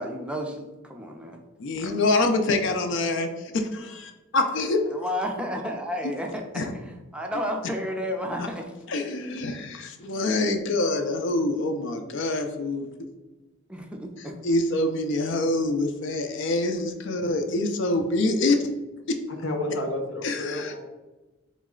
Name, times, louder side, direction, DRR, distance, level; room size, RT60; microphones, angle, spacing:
voice 1, 0.0-1.4 4.9-8.7 13.7-14.3, equal, 5° right, 2 dB, 0.4 m, -32 dB
voice 2, 1.6-3.3 3.5-4.8 6.5-6.7 8.4-8.5 8.9-12.9 14.4-18.6 20.2-20.7, left 2 dB, 65° left, 6 dB, 0.5 m, -25 dB
voice 3, 19.3-20.8, left 1 dB, 85° left, 3 dB, 0.8 m, -31 dB
3.9 x 3.1 x 3.7 m, 1.1 s
head